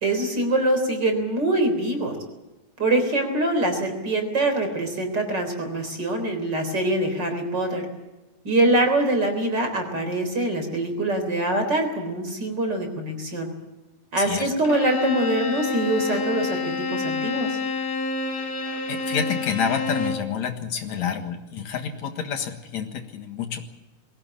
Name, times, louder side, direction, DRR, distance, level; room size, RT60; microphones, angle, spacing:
voice 1, 0.0-2.2 2.8-7.9 8.4-13.5 14.1-17.6, right 1 dB, 35° right, 5 dB, 4.3 m, -24 dB
voice 2, 14.2-14.5 18.9-23.7, left 7 dB, 70° left, 6 dB, 2.9 m, -28 dB
Bowed string instrument, 14.6-20.3, left 4 dB, 50° left, 3.4 m, -28 dB
22.0 x 16.5 x 8.9 m, 1.1 s
omnidirectional pair, 3.4 m